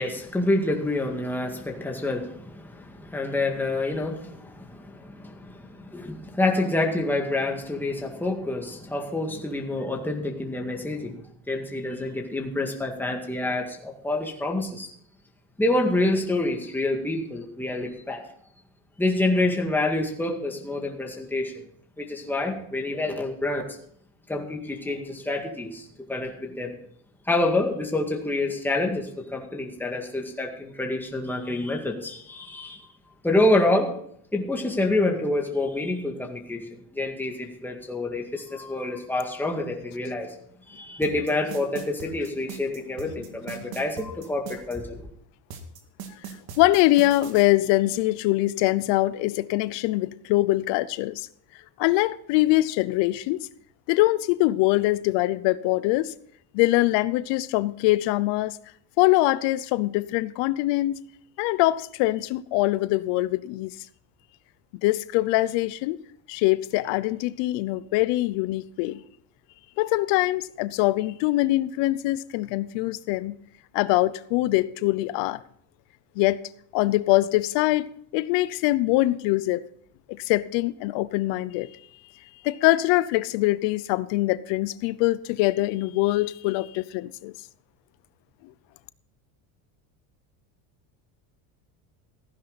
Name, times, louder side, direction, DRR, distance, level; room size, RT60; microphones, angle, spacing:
voice 1, 0.0-11.2 11.5-14.9 15.6-18.2 19.0-21.5 22.0-23.7 24.3-26.7 27.3-32.9 33.2-33.9 34.3-40.3 40.7-45.0, left 2 dB, 5° left, 2.0 m, -27 dB
sound 1, 41.0-44.8 45.5-47.5, right 6 dB, 55° right, 2.2 m, -39 dB
voice 2, 46.6-51.3 51.8-53.5 53.9-56.1 56.5-58.6 59.0-61.0 61.4-63.7 64.8-66.0 66.3-69.0 69.8-73.4 73.7-75.4 76.2-76.4 76.7-79.6 80.1-81.7 82.4-87.3, left 18 dB, 70° left, 0.7 m, -23 dB
15.0 x 10.5 x 4.1 m
cardioid pair, 125°, 44 cm